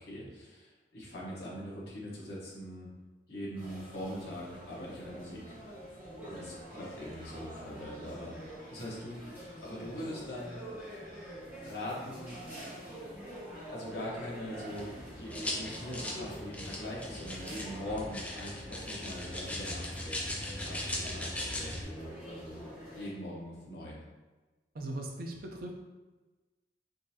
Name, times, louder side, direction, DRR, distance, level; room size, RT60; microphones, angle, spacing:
voice 1, 0.0-2.9 3.3-5.6 6.2-10.6 11.6-12.4 13.6-22.6 23.0-24.0, equal, 65° left, -6 dB, 1.0 m, -42 dB
sound 1, 3.5-23.1, equal, 10° right, 1.2 m, -46 dB
sound 2, 14.8-21.8, left 1 dB, 10° left, 0.3 m, -39 dB
voice 2, 24.7-25.7, right 1 dB, 55° right, 1 dB, 0.5 m, -39 dB
3.7 x 2.5 x 2.7 m, 1.2 s
head